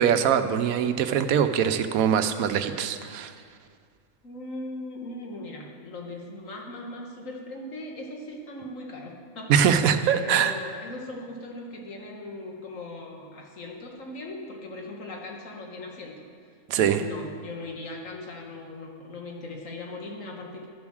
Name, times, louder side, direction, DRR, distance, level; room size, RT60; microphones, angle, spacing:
voice 1, 0.0-3.3 9.5-10.5 16.7-17.0, right 8 dB, 90° right, 10 dB, 1.1 m, -22 dB
voice 2, 4.2-16.3 16.8-20.7, left 2 dB, 70° left, 0 dB, 1.8 m, -39 dB
12.0 x 7.1 x 6.3 m, 2.1 s
omnidirectional pair, 1.5 m